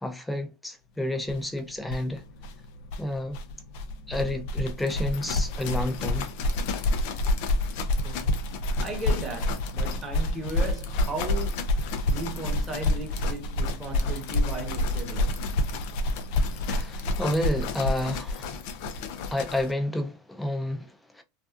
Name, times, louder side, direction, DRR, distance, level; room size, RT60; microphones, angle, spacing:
voice 1, 0.0-2.2 3.0-3.4 4.1-6.3 16.7-18.6 19.3-21.2, left 1 dB, 5° left, 0.5 m, -30 dB
sound 1, 1.3-1.4 1.6-1.7 1.8-19.7, left 2 dB, 65° left, 0.4 m, -28 dB
voice 2, 8.0-15.4, right 2 dB, 25° right, 1.0 m, -36 dB
2.5 x 2.3 x 2.4 m
hypercardioid pair, 100°, 0 cm